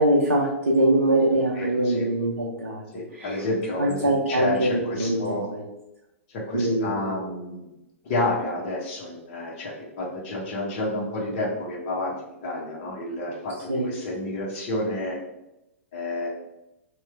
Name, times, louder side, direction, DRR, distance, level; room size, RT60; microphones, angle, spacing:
voice 1, 0.0-2.8 3.1-3.4 3.8-5.2 5.5-5.6 6.5-7.1 13.7-13.9, right 1 dB, 80° right, -4 dB, 0.6 m, -23 dB
voice 2, 1.5-2.0 2.9-5.4 6.3-7.7 8.0-15.2 15.9-16.3, left 2 dB, 45° left, -3 dB, 0.9 m, -30 dB
2.9 x 2.2 x 3.5 m, 0.91 s
figure-of-eight pair, 105°, 7 cm